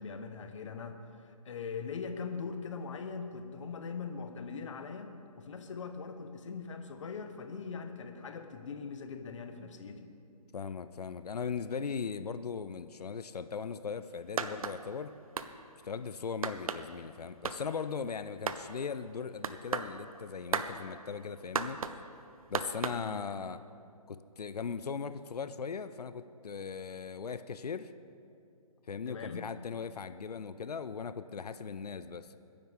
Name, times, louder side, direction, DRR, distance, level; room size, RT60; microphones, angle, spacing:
voice 1, 0.0-10.1 22.9-23.2 29.1-29.5, left 5 dB, 50° left, 6 dB, 1.2 m, -41 dB
voice 2, 10.5-15.1 15.8-21.8 22.5-23.6 24.1-27.9 28.9-32.3, left 6 dB, 80° left, 13 dB, 0.6 m, -39 dB
sound 1, 14.4-14.8 15.4-15.5 16.4-16.8 17.4-17.6 18.5-18.6 19.4-19.9 20.5-20.7 21.6-22.0 22.5-23.0, right 6 dB, 65° right, 0.8 m, -33 dB
22.0 x 10.5 x 3.6 m, 2.5 s
hypercardioid pair, 150°, 20 cm